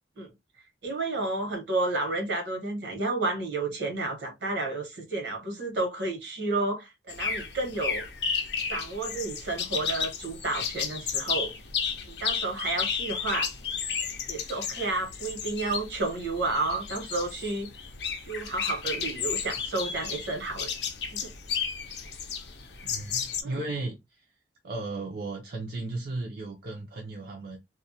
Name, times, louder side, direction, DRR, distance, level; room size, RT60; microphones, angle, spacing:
voice 1, 0.8-8.0 8.7-11.5 12.1-13.5 14.3-17.7 18.3-20.7 21.1-21.3 23.4-23.6, right 2 dB, 80° right, 1.1 m, -31 dB
sound 1, 7.1-23.4, left 6 dB, 70° left, 0.5 m, -33 dB
voice 2, 22.8-24.3 24.6-27.6, right 2 dB, 60° right, 0.5 m, -35 dB
2.4 x 2.1 x 2.7 m
head